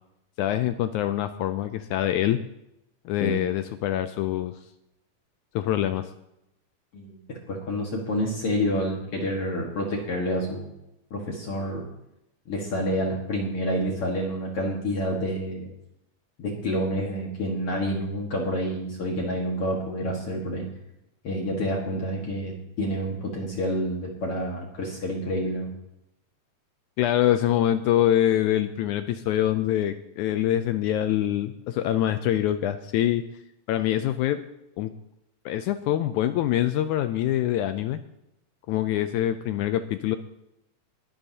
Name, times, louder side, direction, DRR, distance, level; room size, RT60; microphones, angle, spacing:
voice 1, 0.4-2.4 3.1-4.6 5.6-6.1 27.0-33.2 33.7-34.4 34.8-34.9 35.5-38.0 38.7-40.2, left 12 dB, 80° left, 10 dB, 1.8 m, -25 dB
voice 2, 7.5-10.7 11.1-11.9 12.5-15.7 16.4-20.7 21.2-25.7, equal, 50° left, -1 dB, 2.3 m, -28 dB
20.5 x 11.0 x 2.8 m, 0.83 s
omnidirectional pair, 3.7 m